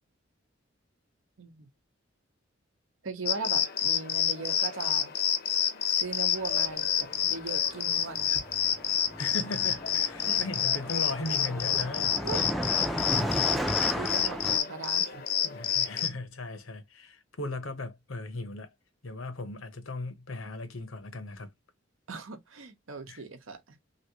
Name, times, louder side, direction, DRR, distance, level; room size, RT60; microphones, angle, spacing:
voice 1, 1.4-1.7 3.0-5.1 5.9-8.4 10.3-10.5 12.0-12.4 14.0-15.2 22.1-23.8, right 4 dB, 85° right, 0.8 m, -39 dB
sound 1, 3.3-16.1, left 8 dB, 50° left, 0.6 m, -29 dB
Car passing by, 7.1-7.3 7.6-14.6, equal, ahead, 0.3 m, -35 dB
voice 2, 9.2-12.1 12.8-13.3 15.4-18.7 19.0-21.5 23.1-23.2, left 2 dB, 90° left, 0.9 m, -38 dB
3.1 x 2.6 x 2.8 m
head